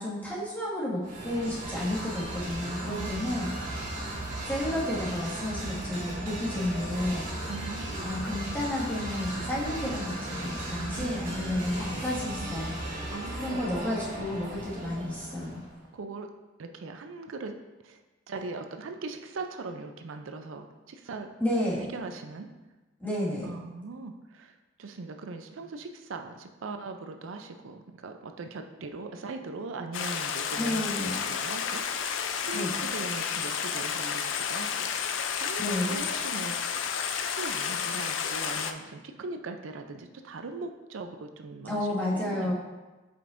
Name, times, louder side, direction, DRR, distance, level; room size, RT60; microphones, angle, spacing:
voice 1, 0.0-3.5 4.4-7.3 8.0-12.7 13.4-15.7 21.4-21.8 23.0-23.5 30.6-31.2 32.5-32.7 35.6-35.9 41.7-42.5, left 1 dB, 10° left, -8 dB, 1.8 m, -31 dB
sound 1, 1.0-15.7, right 1 dB, 45° right, 1.9 m, -36 dB
voice 2, 2.9-3.4 7.5-8.3 10.7-11.7 13.1-13.6 15.9-16.3 16.6-17.6 17.8-18.0 18.3-21.3 21.8-22.5 23.4-31.8 32.1-41.9 42.1-42.5, right 3 dB, 85° right, 6 dB, 0.5 m, -40 dB
Stream, 29.9-38.7, left 7 dB, 70° left, 0.4 m, -31 dB
7.7 x 5.2 x 2.5 m, 1.2 s
head